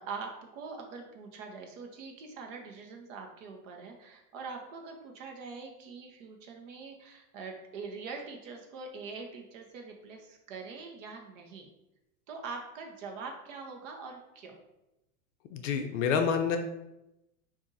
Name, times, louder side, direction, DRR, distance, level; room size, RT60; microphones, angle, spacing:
voice 1, 0.0-11.7 12.3-14.6, right 4 dB, 55° right, 3 dB, 0.9 m, -43 dB
voice 2, 15.5-16.6, left 6 dB, 55° left, 6 dB, 0.5 m, -28 dB
5.3 x 2.6 x 2.5 m, 0.90 s
supercardioid pair, 135°, 47 cm